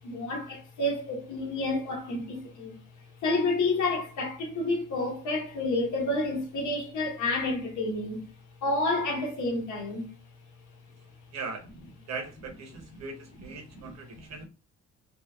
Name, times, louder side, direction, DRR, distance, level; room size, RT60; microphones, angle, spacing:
voice 1, 0.0-2.8 3.2-8.2 8.6-10.1 13.8-13.9, left 2 dB, 75° left, 1.1 m, -29 dB
voice 2, 11.3-11.7 12.1-14.5, right 4 dB, 60° right, 0.9 m, -39 dB
3.0 x 2.8 x 2.3 m
cardioid pair, 90°, 30 cm